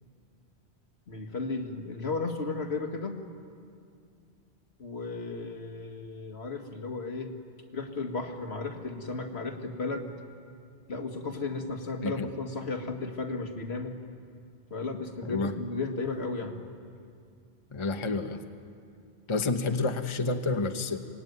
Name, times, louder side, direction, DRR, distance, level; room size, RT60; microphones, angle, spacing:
voice 1, 1.1-3.2 4.8-7.3 7.7-10.1 10.9-14.0 14.7-16.6, left 3 dB, 75° left, 4 dB, 2.1 m, -34 dB
voice 2, 15.2-15.5 17.7-18.4 19.3-21.0, left 3 dB, 30° left, 7 dB, 1.1 m, -29 dB
24.5 x 20.5 x 9.5 m, 2.3 s
omnidirectional pair, 1.1 m